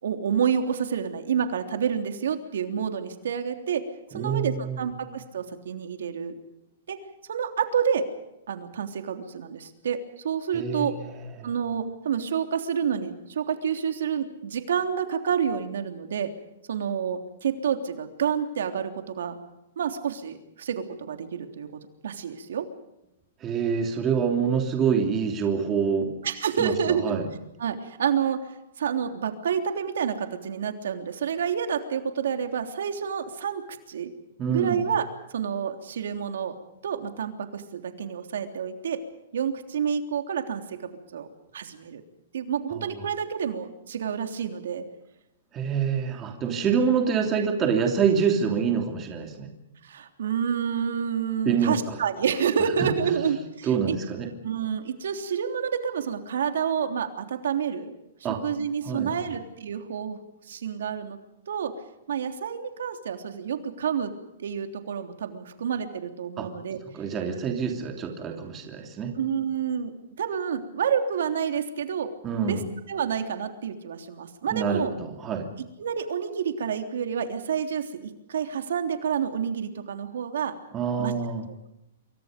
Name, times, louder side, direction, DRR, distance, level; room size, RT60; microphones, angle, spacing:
voice 1, 0.0-3.8 4.1-6.3 6.9-7.0 7.3-8.0 8.5-10.0 10.2-10.9 11.4-16.3 16.7-19.4 19.8-21.7 22.0-22.7 26.2-27.2 27.6-28.4 28.8-33.6 33.9-34.1 34.5-35.1 35.3-36.5 36.8-39.0 39.3-41.3 41.5-42.0 42.3-44.8 49.8-54.0 54.4-57.9 58.4-61.2 61.5-61.7 62.1-64.1 64.4-66.8 69.2-72.1 72.5-72.6 72.9-74.9 75.8-80.5 81.0-81.1, right 7 dB, 75° right, 6 dB, 3.3 m, -29 dB
voice 2, 4.1-4.9 10.5-11.5 23.4-26.1 26.6-27.3 34.4-34.8 42.7-42.9 45.5-49.5 51.4-52.0 52.8-53.3 53.6-54.3 58.2-58.4 58.8-59.1 66.4-66.5 66.9-69.1 72.2-72.7 74.5-75.5 80.7-81.4, right 6 dB, 15° right, 3 dB, 3.0 m, -26 dB
27.5 x 24.5 x 5.2 m, 0.88 s
hypercardioid pair, 175°, 0 cm